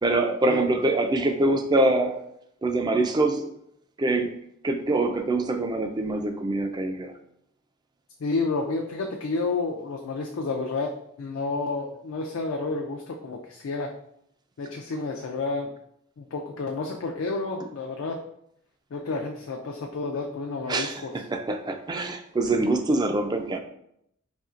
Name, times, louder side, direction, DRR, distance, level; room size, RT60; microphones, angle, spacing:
voice 1, 0.0-2.2 2.6-3.5 4.0-4.3 4.6-7.1 20.7-23.6, right 2 dB, 20° right, 6 dB, 0.3 m, -24 dB
voice 2, 8.2-10.9 11.2-13.9 14.6-15.7 16.2-18.2 18.9-21.1, left 3 dB, 80° left, 1 dB, 0.4 m, -30 dB
4.2 x 3.1 x 2.4 m, 0.74 s
head